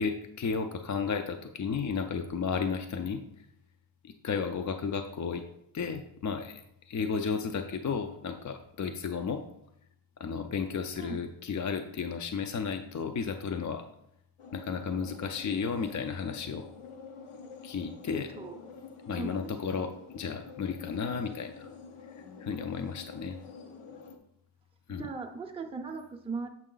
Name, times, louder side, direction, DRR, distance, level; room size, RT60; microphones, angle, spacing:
voice 1, 0.0-3.3 4.0-5.4 5.7-9.4 10.2-13.8 14.5-16.7 17.6-18.3 19.1-21.7 22.4-23.4 24.9-25.1, left 5 dB, 40° left, 6 dB, 0.4 m, -33 dB
sound 1, 14.4-24.2, left 5 dB, 85° left, 0.9 m, -47 dB
voice 2, 19.1-19.7 25.0-26.5, right 4 dB, 10° right, 2 dB, 0.5 m, -38 dB
7.3 x 5.3 x 3.8 m, 0.77 s
wide cardioid pair, 155°, 48 cm